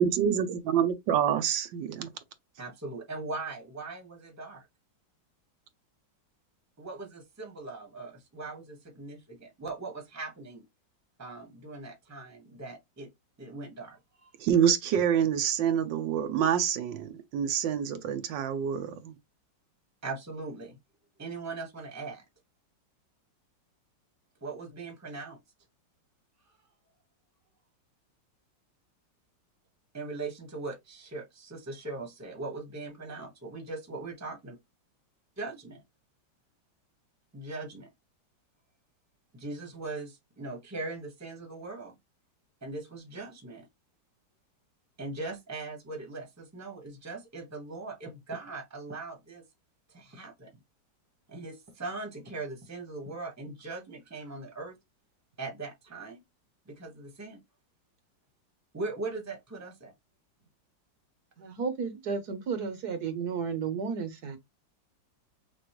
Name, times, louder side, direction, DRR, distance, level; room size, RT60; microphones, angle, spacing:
voice 1, 0.0-2.1 14.4-19.1, right 8 dB, 80° right, 1.4 m, -27 dB
voice 2, 2.6-4.7 6.8-10.6 11.2-13.1 13.4-14.3 20.0-20.8 21.2-22.2 24.4-25.4 29.9-34.5 35.4-35.8 37.3-37.9 39.3-42.0 42.6-43.6 45.0-49.4 49.9-50.5 51.3-54.8 55.4-56.2 56.7-57.4 58.7-59.9, right 3 dB, 10° right, 1.0 m, -40 dB
voice 3, 61.4-64.4, right 6 dB, 60° right, 1.3 m, -33 dB
6.1 x 2.5 x 3.0 m
omnidirectional pair, 2.0 m